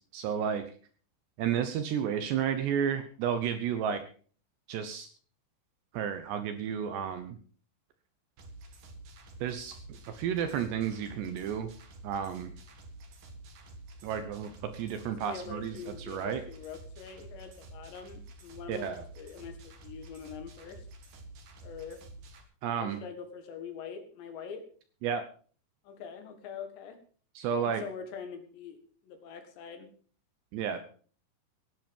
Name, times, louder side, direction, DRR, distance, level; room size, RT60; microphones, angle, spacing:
voice 1, 0.1-0.7 1.4-4.0 4.7-5.1 5.9-7.4 9.4-11.7 12.0-12.5 14.0-16.4 18.7-19.0 22.6-23.0 25.0-25.2 27.4-27.8 30.5-30.8, right 8 dB, 75° right, 9 dB, 2.7 m, -32 dB
sound 1, 8.4-22.4, right 2 dB, 50° right, 2.9 m, -49 dB
voice 2, 15.2-18.9 19.2-20.9 21.6-22.0 22.8-24.6 25.9-27.0 27.6-28.8 29.0-29.9, left 6 dB, 65° left, 7 dB, 3.6 m, -44 dB
16.5 x 11.0 x 5.3 m, 0.43 s
omnidirectional pair, 5.9 m